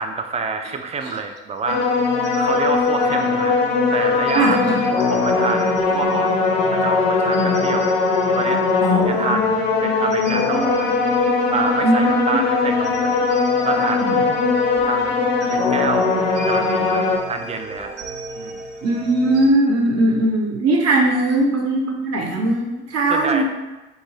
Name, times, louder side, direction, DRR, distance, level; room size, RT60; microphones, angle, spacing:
voice 1, 0.0-1.8 2.3-3.6 3.9-4.8 5.1-6.4 6.7-7.9 8.3-8.6 9.0-10.9 11.5-13.2 13.6-14.2 14.8-16.1 16.4-18.0 18.4-18.6 23.1-23.4, right 4 dB, 20° right, 5 dB, 0.4 m, -27 dB
sound 1, 1.7-17.2, left 4 dB, 65° left, 0.6 m, -20 dB
sound 2, 1.7-19.5, right 1 dB, 75° right, 0.6 m, -33 dB
voice 2, 4.3-4.8 7.4-7.5 8.8-9.3 11.8-12.1 14.0-14.2 18.8-23.4, right 1 dB, 45° right, 0 dB, 0.9 m, -19 dB
3.6 x 2.6 x 3.2 m, 1.1 s
figure-of-eight pair, 50°, 34 cm